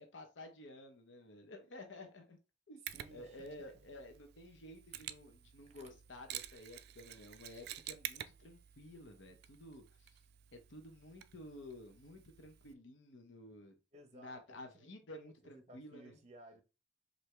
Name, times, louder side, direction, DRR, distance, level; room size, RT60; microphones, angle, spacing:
voice 1, 0.0-2.4 2.7-2.8 3.1-10.1 10.5-13.8 14.1-16.2, left 1 dB, 90° left, 0.8 m, -53 dB
voice 2, 2.9-3.5 5.8-5.9 13.9-16.6, right 1 dB, 40° right, 0.8 m, -58 dB
Mechanisms, 2.9-12.7, right 12 dB, 60° right, 0.3 m, -50 dB
4.6 x 2.7 x 3.2 m
head